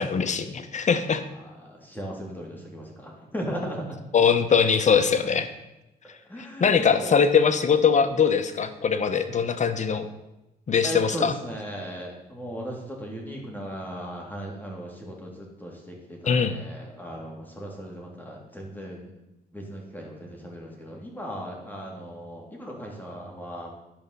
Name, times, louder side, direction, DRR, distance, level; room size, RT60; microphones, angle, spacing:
voice 1, 0.0-1.2 4.1-5.5 6.6-10.1 10.7-11.3 16.3-16.6, left 6 dB, 45° left, 9 dB, 1.0 m, -21 dB
voice 2, 1.3-4.0 6.3-7.2 10.8-19.1 19.5-23.7, equal, 10° left, -1 dB, 3.0 m, -37 dB
11.0 x 5.3 x 6.8 m, 0.96 s
cardioid pair, 85°, 17 cm